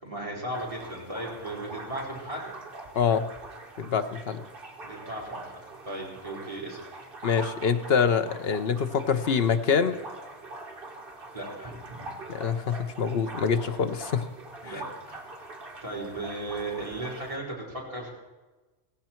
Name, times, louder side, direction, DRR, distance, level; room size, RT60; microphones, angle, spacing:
voice 1, 0.0-2.5 4.8-7.0 11.3-12.0 14.6-15.2 15.8-18.1, right 1 dB, 25° right, -4 dB, 4.6 m, -36 dB
sound 1, 0.5-17.4, right 2 dB, 45° right, 2.0 m, -43 dB
voice 2, 2.9-3.3 3.8-4.4 7.2-10.0 12.3-14.3, left 6 dB, 55° left, 9 dB, 1.0 m, -25 dB
16.5 x 16.0 x 4.5 m, 1.2 s
omnidirectional pair, 1.3 m